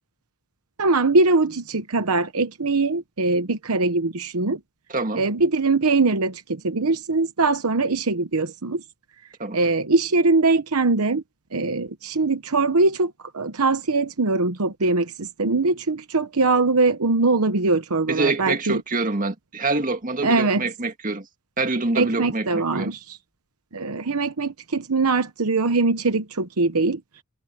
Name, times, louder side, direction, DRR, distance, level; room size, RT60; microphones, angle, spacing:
voice 1, 0.8-4.6 5.1-8.8 9.5-11.2 11.5-18.8 20.2-20.7 21.9-23.2 23.7-27.0, right 3 dB, 70° right, 1.0 m, -22 dB
voice 2, 4.9-5.3 9.4-9.6 18.1-21.3 21.6-22.9, right 3 dB, 40° right, 2.1 m, -26 dB
head